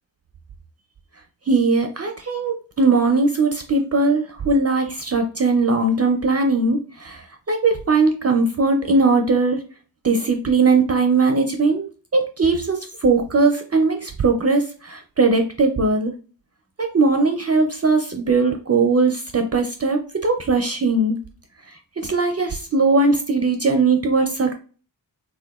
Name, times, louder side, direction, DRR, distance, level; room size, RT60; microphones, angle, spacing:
voice 1, 1.5-9.6 10.0-11.8 12.1-16.1 16.8-21.2 21.7-24.5, right 3 dB, 35° right, 4 dB, 0.4 m, -19 dB
3.3 x 2.7 x 2.3 m, 0.38 s
cardioid pair, 50°, 45 cm